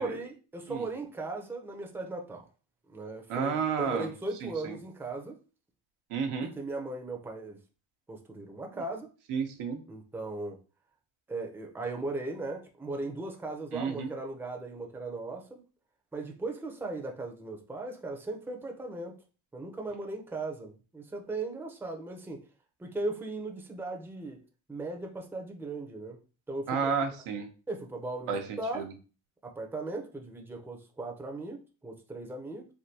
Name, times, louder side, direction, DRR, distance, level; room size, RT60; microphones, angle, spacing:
voice 1, 0.0-2.4 2.9-5.4 6.4-7.6 8.1-9.1 9.9-10.6 11.3-15.6 16.1-19.2 19.5-22.4 22.8-24.4 24.7-26.2 26.5-26.9 27.7-28.9 29.4-32.7, right 2 dB, 5° right, 0.5 m, -37 dB
voice 2, 3.3-4.1 4.4-4.8 6.1-6.5 9.3-9.8 13.7-14.1 26.7-27.5 28.3-28.8, right 6 dB, 80° right, 0.8 m, -31 dB
3.5 x 2.2 x 2.7 m
cardioid pair, 70°, 50 cm